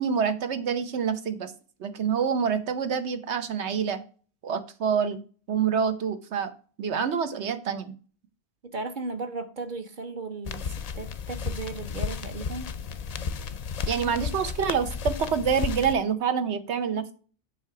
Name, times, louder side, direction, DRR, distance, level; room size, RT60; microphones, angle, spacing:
voice 1, 0.0-1.5 1.8-4.0 4.4-5.2 5.5-6.5 6.8-7.9 13.9-17.1, right 7 dB, 80° right, 9 dB, 1.1 m, -27 dB
voice 2, 8.6-12.7, right 3 dB, 45° right, 7 dB, 1.1 m, -36 dB
sound 1, 10.4-15.9, left 6 dB, 50° left, 0.5 m, -33 dB
7.6 x 3.5 x 5.8 m, 0.39 s
omnidirectional pair, 1.1 m